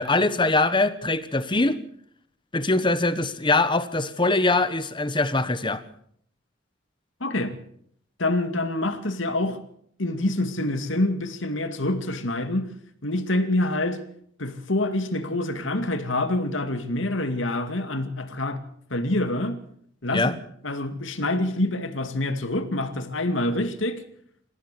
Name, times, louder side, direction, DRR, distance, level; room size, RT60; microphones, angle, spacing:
voice 1, 0.0-1.8 2.5-5.8 20.1-20.3, left 2 dB, 25° left, 1.3 m, -22 dB
voice 2, 7.2-7.6 8.2-9.6 10.0-12.7 13.0-14.0 14.4-18.6 18.9-19.6 20.0-20.4 20.6-24.0, left 1 dB, 75° left, 2.4 m, -26 dB
26.5 x 15.0 x 7.0 m
head